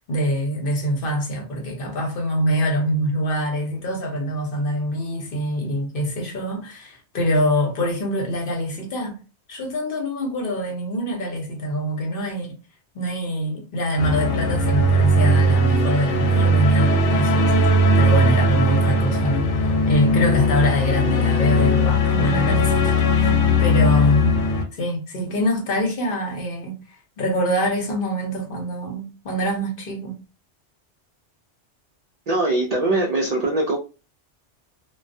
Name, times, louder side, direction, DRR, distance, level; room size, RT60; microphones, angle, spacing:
voice 1, 0.1-9.2 9.5-12.5 12.9-24.5 24.7-26.8 27.2-30.2, equal, 55° left, 0.9 m, -25 dB
sound 1, 14.0-24.6, left 1 dB, 85° left, 0.9 m, -19 dB
voice 2, 32.3-33.8, right 2 dB, 65° right, 0.4 m, -21 dB
2.2 x 2.2 x 2.5 m
omnidirectional pair, 1.2 m